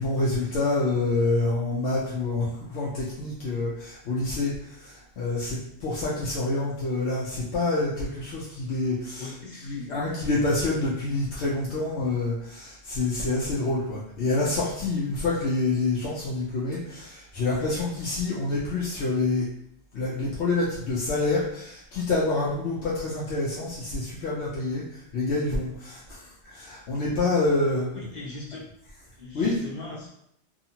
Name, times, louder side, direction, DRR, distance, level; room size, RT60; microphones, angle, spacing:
voice 1, 0.0-9.3 9.6-19.5 19.9-27.9 29.3-29.6, left 2 dB, 70° left, -6 dB, 0.9 m, -27 dB
voice 2, 9.2-10.0 27.9-28.6 29.2-30.1, left 3 dB, 40° left, -6 dB, 0.8 m, -39 dB
2.7 x 2.4 x 2.7 m, 0.74 s
omnidirectional pair, 1.3 m